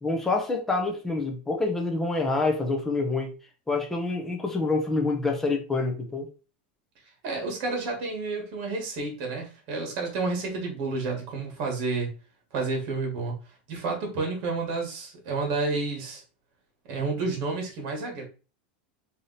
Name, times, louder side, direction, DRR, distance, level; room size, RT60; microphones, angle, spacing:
voice 1, 0.0-3.3 3.7-6.3, left 3 dB, 5° left, 1 dB, 0.6 m, -27 dB
voice 2, 7.2-12.1 12.5-13.4 13.7-16.2 16.9-18.2, right 3 dB, 45° right, 1 dB, 1.6 m, -30 dB
3.4 x 2.8 x 3.9 m, 0.34 s
supercardioid pair, 170°, 5 cm